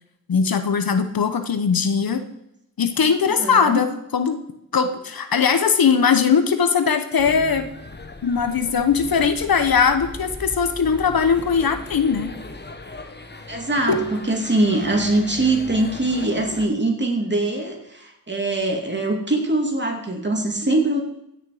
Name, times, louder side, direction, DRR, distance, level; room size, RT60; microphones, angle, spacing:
voice 1, 0.3-2.2 2.8-4.4 4.7-7.7 8.2-12.3 13.9-14.2, left 6 dB, 75° left, 9 dB, 1.1 m, -20 dB
voice 2, 3.4-3.8 13.5-21.0, right 2 dB, 30° right, 2 dB, 2.6 m, -22 dB
sound 1, 7.2-16.7, left 2 dB, 30° left, 1.2 m, -38 dB
15.5 x 6.6 x 5.0 m, 0.81 s
wide cardioid pair, 65°, 36 cm